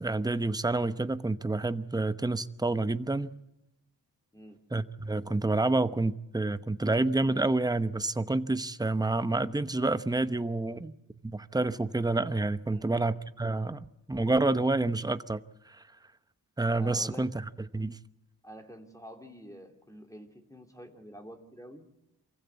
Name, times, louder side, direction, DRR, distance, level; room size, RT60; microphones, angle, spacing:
voice 1, 0.0-3.4 4.7-10.9 11.3-15.4 15.7-15.8 16.6-17.3 17.7-18.0, right 2 dB, 10° right, 0.9 m, -28 dB
voice 2, 16.7-17.3 18.4-21.9, equal, 10° left, 2.9 m, -48 dB
24.0 x 15.5 x 8.4 m
cardioid pair, 55°, 40 cm